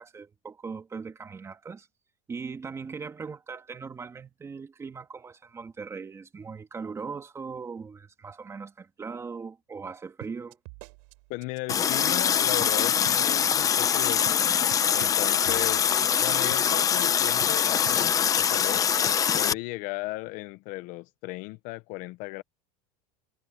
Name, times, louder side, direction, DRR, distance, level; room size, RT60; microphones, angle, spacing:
voice 1, 0.0-1.9 2.3-10.6, right 5 dB, 15° right, 2.3 m, -39 dB
sound 1, 10.2-12.3 12.6-12.7 13.1-13.5 13.8-14.0 14.3-17.1 17.4-17.5 17.9-18.3 18.6-18.8 19.1-19.6, right 33 dB, 60° right, 6.8 m, -45 dB
voice 2, 11.3-14.4 14.9-15.9 16.2-18.9 19.3-22.4, left 20 dB, 50° left, 0.8 m, -36 dB
Water tap faucet, 11.7-19.5, left 8 dB, 20° left, 0.6 m, -23 dB
supercardioid pair, 155°, 18 cm